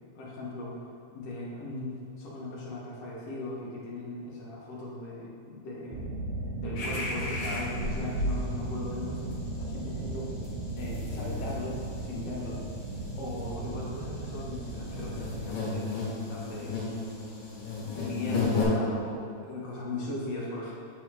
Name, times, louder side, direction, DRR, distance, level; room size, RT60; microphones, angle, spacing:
voice 1, 0.2-0.8 1.1-6.1 6.6-9.3 9.6-10.3 10.7-12.7 13.2-16.8 17.8-20.7, left 2 dB, 60° left, -5 dB, 2.0 m, -38 dB
sound 1, 5.9-15.5, right 2 dB, 85° right, 2.5 m, -35 dB
sound 2, 6.8-8.3 8.7-8.9 9.2-18.6, left 4 dB, 75° left, 2.7 m, -36 dB
7.7 x 5.5 x 3.1 m, 2.4 s
omnidirectional pair, 3.9 m